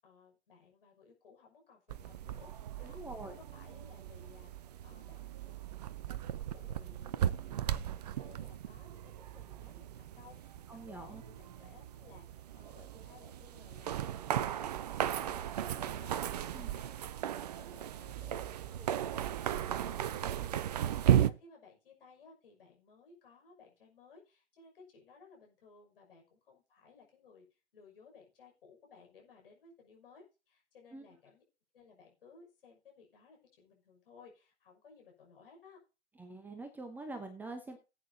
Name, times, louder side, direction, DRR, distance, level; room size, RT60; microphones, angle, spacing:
voice 1, 0.0-4.5 4.8-5.6 6.1-13.9 14.3-17.2 17.5-27.4 27.7-31.4 31.7-35.8, left 5 dB, 55° left, 1 dB, 6.2 m, -59 dB
sound 1, 1.9-21.3, right 10 dB, 35° right, 0.6 m, -36 dB
voice 2, 2.8-3.4 10.7-11.2 16.5-16.7 30.9-31.1 36.2-37.8, right 2 dB, 5° right, 7 dB, 0.9 m, -45 dB
18.0 x 8.6 x 2.8 m, 0.30 s
figure-of-eight pair, 115°, 34 cm